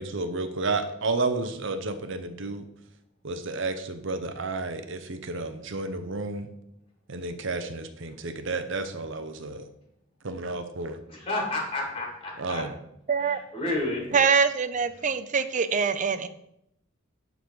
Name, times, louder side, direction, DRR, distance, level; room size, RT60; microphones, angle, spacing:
voice 1, 0.0-2.7 3.2-6.5 7.1-9.6 10.2-11.0 12.4-12.7 14.1-14.2, right 3 dB, 65° right, 9 dB, 0.8 m, -31 dB
voice 2, 11.1-12.6 13.5-14.0, left 2 dB, 30° left, -1 dB, 2.6 m, -30 dB
voice 3, 13.1-13.4 14.1-16.3, right 5 dB, 40° right, 12 dB, 0.5 m, -24 dB
11.5 x 4.0 x 4.7 m, 0.77 s
head